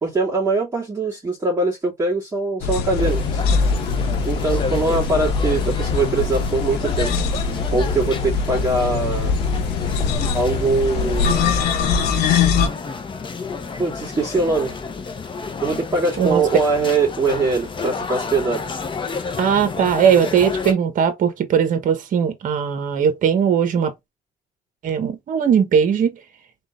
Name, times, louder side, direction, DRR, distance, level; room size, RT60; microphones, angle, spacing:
voice 1, 0.0-3.4 4.2-7.1 7.7-9.3 10.3-11.5 13.8-14.8 15.6-18.7, right 3 dB, 15° right, 2.3 m, -22 dB
sound 1, 2.6-12.7, left 5 dB, 80° left, 1.0 m, -22 dB
sound 2, 3.0-20.7, left 4 dB, 30° left, 0.9 m, -31 dB
voice 2, 19.4-23.9 24.8-26.1, right 7 dB, 50° right, 1.1 m, -19 dB
3.7 x 3.7 x 2.6 m
cardioid pair, 110°, 17 cm